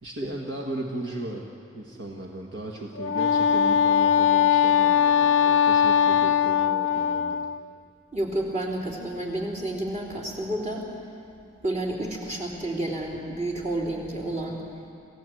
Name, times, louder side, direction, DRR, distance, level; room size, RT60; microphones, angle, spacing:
voice 1, 0.0-1.5 1.7-7.5, right 2 dB, 60° right, 0 dB, 1.6 m, -36 dB
Wind instrument woodwind instrument, 3.0-7.6, left 8 dB, 75° left, 0.5 m, -21 dB
voice 2, 8.1-10.8 11.6-14.6, right 1 dB, 35° right, -2 dB, 3.5 m, -30 dB
28.0 x 16.5 x 7.8 m, 2.6 s
head